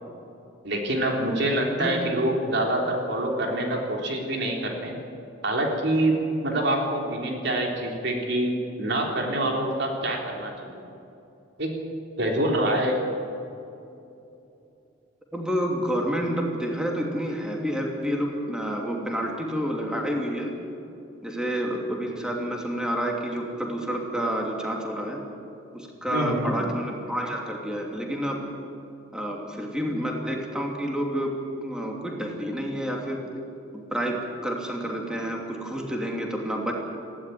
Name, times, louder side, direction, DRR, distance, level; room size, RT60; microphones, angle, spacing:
voice 1, 0.6-5.0 5.4-10.8 11.6-11.7 12.2-13.0 26.1-26.7, right 1 dB, 60° right, 1 dB, 3.7 m, -26 dB
voice 2, 15.3-20.5 21.2-25.2 25.7-28.4 29.1-33.2 33.7-36.7, equal, 5° right, 0 dB, 2.9 m, -29 dB
19.0 x 16.0 x 9.5 m, 2.8 s
head